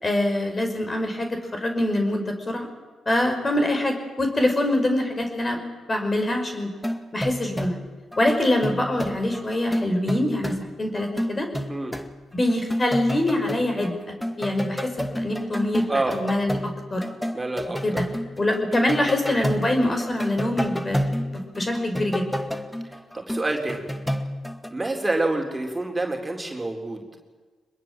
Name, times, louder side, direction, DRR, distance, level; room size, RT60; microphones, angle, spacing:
voice 1, 0.0-2.7 3.1-5.6 5.9-6.7 7.1-7.8 8.2-11.5 12.3-17.0 17.8-18.1 18.4-22.3, left 1 dB, 30° left, 4 dB, 5.5 m, -24 dB
sound 1, 6.8-7.9 8.1-10.6 11.0-12.1 12.5-13.9 14.2-24.7, equal, 10° left, 2.0 m, -30 dB
voice 2, 15.9-16.2 17.3-18.0 22.9-23.9 24.7-27.0, right 2 dB, 20° right, 2 dB, 4.0 m, -27 dB
23.5 x 21.5 x 7.6 m, 1.4 s
hypercardioid pair, 45°, 0 cm